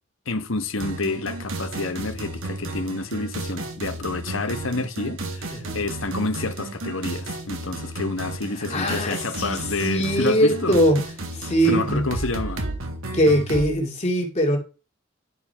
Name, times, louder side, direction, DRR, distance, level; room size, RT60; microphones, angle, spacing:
voice 1, 0.3-10.8 11.7-12.6, left 3 dB, 75° left, 1.1 m, -29 dB
sound 1, 0.8-13.7, right 2 dB, 90° right, 1.8 m, -33 dB
voice 2, 8.7-9.6 9.8-11.0 11.3-12.0 13.1-14.6, equal, 35° left, 2.5 m, -21 dB
11.0 x 4.8 x 5.7 m
head